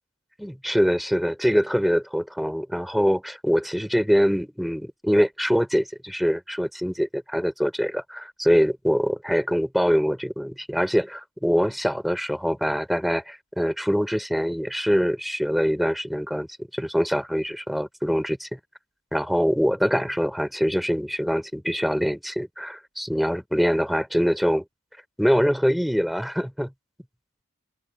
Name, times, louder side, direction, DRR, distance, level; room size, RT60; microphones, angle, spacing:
voice 1, 0.4-18.6 19.1-24.6 25.2-26.7, equal, ahead, 3.5 m, -24 dB
open air
head